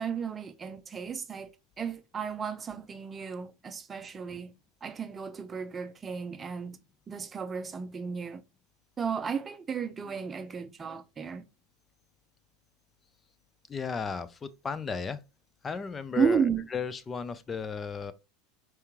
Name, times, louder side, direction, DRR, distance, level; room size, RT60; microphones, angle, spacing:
voice 1, 0.0-1.5 1.8-4.5 4.8-6.8 7.1-8.4 9.0-11.4 16.2-16.7, right 6 dB, 25° right, 0.6 m, -33 dB
voice 2, 13.7-15.2 15.6-16.4 16.7-18.1, left 5 dB, 25° left, 0.5 m, -34 dB
4.5 x 3.5 x 2.9 m
hypercardioid pair, 95°, 0 cm